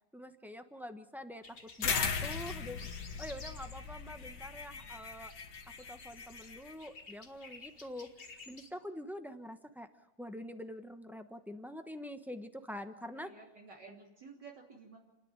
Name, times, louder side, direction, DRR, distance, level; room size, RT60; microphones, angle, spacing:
voice 1, 0.1-2.9 3.2-5.3 5.9-9.9 10.2-13.3, equal, ahead, 7 dB, 0.8 m, -45 dB
sound 1, 1.4-8.7, left 3 dB, 30° left, 1.6 m, -54 dB
sound 2, 1.8-6.7, left 6 dB, 75° left, 2.1 m, -38 dB
voice 2, 13.0-15.0, right 4 dB, 55° right, -2 dB, 3.8 m, -53 dB
29.5 x 10.5 x 9.1 m, 1.1 s
omnidirectional pair, 2.1 m